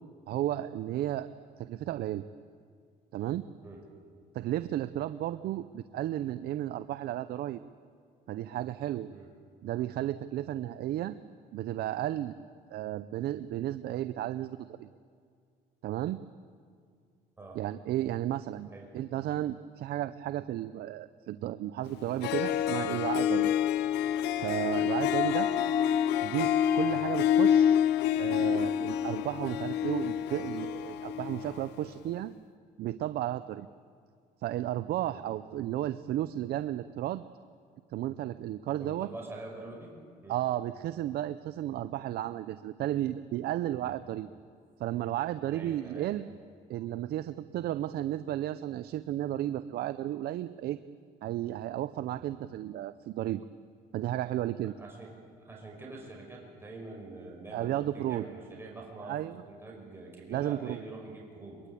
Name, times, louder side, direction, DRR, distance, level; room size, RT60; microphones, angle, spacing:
voice 1, 0.3-1.3 1.6-2.2 3.1-3.5 4.3-7.6 8.3-9.1 9.6-11.1 11.5-12.3 12.7-14.9 15.8-16.2 17.5-18.7 18.9-23.5 24.4-25.5 26.2-27.8 28.2-32.3 32.8-33.7 34.4-37.2 37.9-39.1 40.3-44.3 44.8-46.3 46.7-50.8 51.2-53.5 53.9-54.7 57.5-58.3 59.0-59.4 60.3-60.8, right 13 dB, 70° right, 13 dB, 0.7 m, -33 dB
Harp, 21.9-22.0 22.2-31.7, left 9 dB, 90° left, 0.8 m, -27 dB
voice 2, 38.8-39.9 40.2-40.4 43.7-44.0 44.5-44.8 45.5-46.2 52.2-52.4 54.8-61.6, right 2 dB, 15° right, -1 dB, 5.7 m, -45 dB
22.5 x 22.0 x 8.4 m, 2.2 s
cardioid pair, 110°, 17 cm